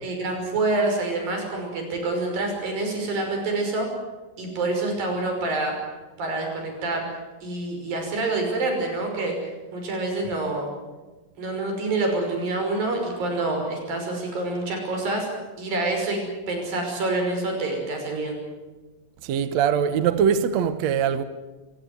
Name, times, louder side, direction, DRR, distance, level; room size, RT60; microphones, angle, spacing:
voice 1, 0.0-3.9 4.4-5.7 6.2-7.0 7.4-9.4 9.7-10.7 11.4-15.3 15.6-18.4, right 2 dB, 80° right, 7.5 m, -27 dB
voice 2, 19.2-21.2, right 8 dB, 65° right, 2.0 m, -22 dB
26.5 x 16.5 x 9.7 m
omnidirectional pair, 4.0 m